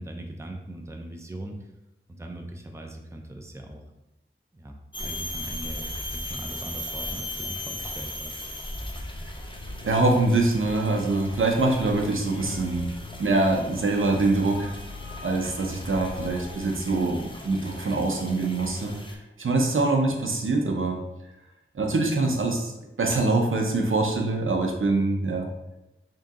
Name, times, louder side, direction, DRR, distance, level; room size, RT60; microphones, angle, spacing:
voice 1, 0.0-1.7 2.2-3.8 4.5-8.4, right 1 dB, 15° right, 2 dB, 0.5 m, -40 dB
sound 1, 4.9-19.2, left 1 dB, 25° left, 0.6 m, -38 dB
sound 2, 9.4-17.7, left 3 dB, 65° left, 0.4 m, -43 dB
voice 2, 9.8-12.9 13.2-14.7 15.2-21.0 21.7-22.7 23.0-25.5, right 2 dB, 75° right, 1 dB, 0.6 m, -24 dB
3.8 x 2.8 x 3.6 m, 0.95 s
wide cardioid pair, 60°, 21 cm